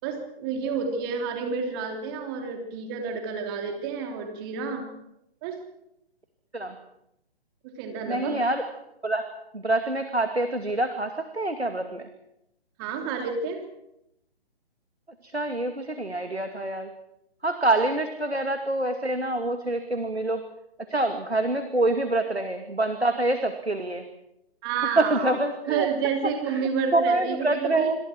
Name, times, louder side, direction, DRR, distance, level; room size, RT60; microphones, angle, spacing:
voice 1, 0.0-4.9 5.4-5.6 7.8-8.3 12.8-13.6 24.6-25.4 25.7-27.9, right 6 dB, 20° right, 4 dB, 3.3 m, -29 dB
voice 2, 8.1-8.7 9.0-9.2 9.5-12.1 15.2-16.9 17.4-20.4 20.9-24.1 25.0-25.9 26.6-26.7 26.9-27.9, right 2 dB, 85° right, 7 dB, 2.5 m, -26 dB
27.5 x 27.0 x 4.6 m, 0.82 s
figure-of-eight pair, 135°, 31 cm